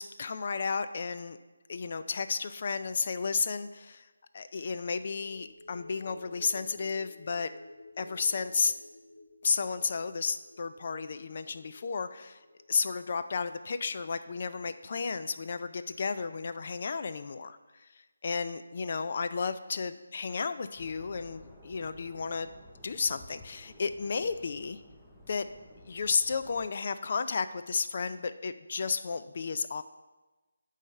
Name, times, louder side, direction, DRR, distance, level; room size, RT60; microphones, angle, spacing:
voice 1, 0.0-1.4 1.7-4.1 4.3-7.5 8.0-8.7 9.4-12.4 12.7-17.9 18.2-22.5 22.8-24.8 25.3-25.5 25.9-29.8, left 5 dB, 45° left, 11 dB, 0.4 m, -33 dB
sound 1, 5.0-15.6 15.9-16.1, left 2 dB, 70° left, 1.4 m, -53 dB
sound 2, 20.7-26.7, left 1 dB, 5° left, 0.7 m, -54 dB
9.7 x 3.3 x 6.7 m, 1.2 s
figure-of-eight pair, 160°, 0 cm